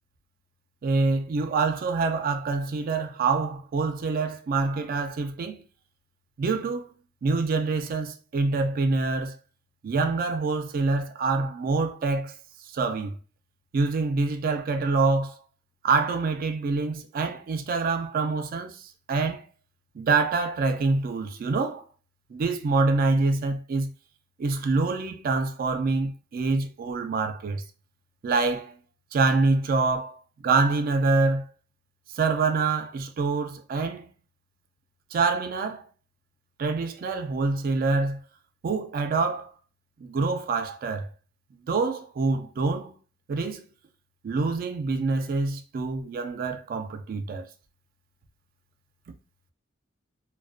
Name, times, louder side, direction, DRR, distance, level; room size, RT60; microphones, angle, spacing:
voice 1, 0.8-5.6 6.4-6.9 7.2-9.4 9.8-12.3 12.7-13.2 13.7-15.4 15.8-19.5 19.9-21.8 22.3-23.9 24.4-27.6 28.2-28.8 29.1-31.5 32.1-34.1 35.1-35.9 36.6-38.2 38.6-39.5 40.0-41.1 41.5-43.0 43.3-43.6 44.2-47.5, right 3 dB, 45° right, 0.3 m, -26 dB
2.4 x 2.1 x 2.4 m
head